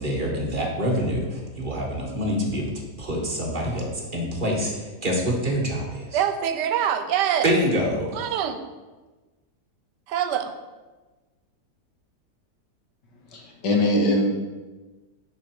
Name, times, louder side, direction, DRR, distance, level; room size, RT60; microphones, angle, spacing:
voice 1, 0.0-6.2 7.4-8.3, equal, 30° right, -1 dB, 1.4 m, -26 dB
voice 2, 6.1-7.5 8.1-8.6 10.1-10.5, right 9 dB, 85° right, 9 dB, 1.3 m, -24 dB
voice 3, 13.3-14.3, left 1 dB, 85° left, 0 dB, 2.1 m, -21 dB
10.0 x 4.8 x 4.7 m, 1.2 s
omnidirectional pair, 1.8 m